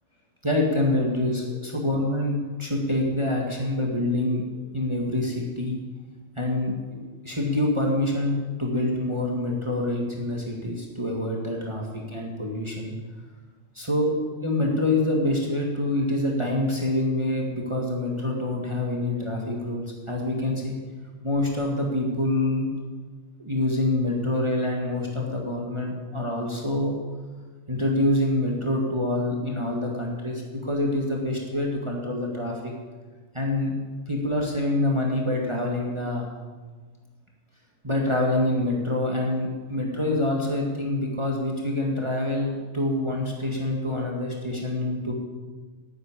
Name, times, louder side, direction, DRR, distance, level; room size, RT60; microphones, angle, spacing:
voice 1, 0.4-5.8 6.4-7.0 7.2-13.0 13.7-14.1 14.4-20.8 21.2-22.7 23.4-26.9 27.7-32.7 33.3-33.7 34.1-36.3 37.8-45.1, left 1 dB, 20° right, -1 dB, 1.9 m, -26 dB
9.8 x 9.3 x 9.8 m, 1.4 s
omnidirectional pair, 1.4 m